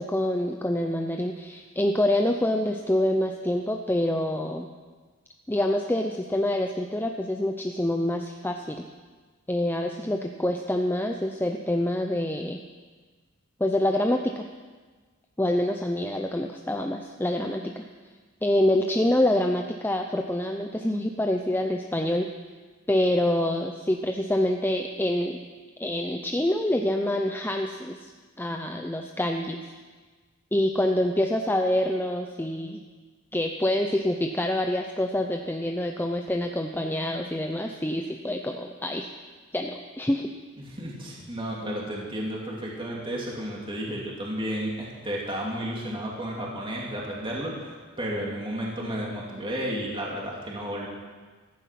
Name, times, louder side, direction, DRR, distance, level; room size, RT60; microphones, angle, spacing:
voice 1, 0.0-4.7 5.5-8.8 9.5-12.6 13.6-14.5 15.4-17.9 18.4-22.3 22.9-25.4 25.8-28.1 28.4-29.6 30.5-32.8 33.3-39.1 39.5-40.3, left 1 dB, 10° left, 4 dB, 0.7 m, -26 dB
voice 2, 40.6-50.9, equal, 25° right, -3 dB, 2.8 m, -32 dB
15.0 x 14.5 x 5.9 m, 1.4 s
head